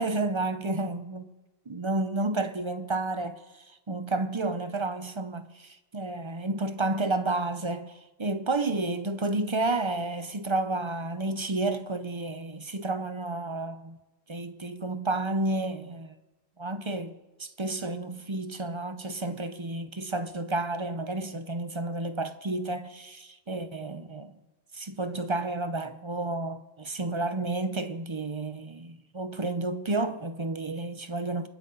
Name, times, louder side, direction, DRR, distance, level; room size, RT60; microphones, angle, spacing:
voice 1, 0.0-1.3 1.7-13.9 14.3-16.1 16.6-24.4 24.7-31.5, right 2 dB, 30° right, 0.7 m, -31 dB
28.0 x 9.6 x 3.9 m
omnidirectional pair, 1.2 m